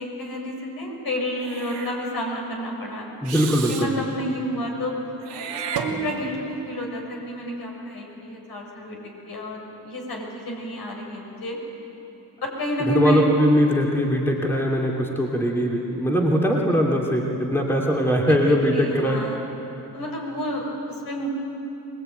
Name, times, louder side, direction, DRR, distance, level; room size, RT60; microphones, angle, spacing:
voice 1, 0.0-3.0 3.7-4.9 5.3-9.0 9.3-11.6 12.4-13.3 18.3-19.4 19.9-21.3, equal, 55° left, -1 dB, 6.7 m, -30 dB
Meow / Hiss, 1.4-2.0 3.2-3.9 5.2-6.4, right 6 dB, 75° right, 2.8 m, -32 dB
voice 2, 3.2-3.9 12.9-19.2, equal, 5° left, -1 dB, 2.8 m, -21 dB
24.0 x 20.5 x 9.3 m, 3.0 s
cardioid pair, 90°, 42 cm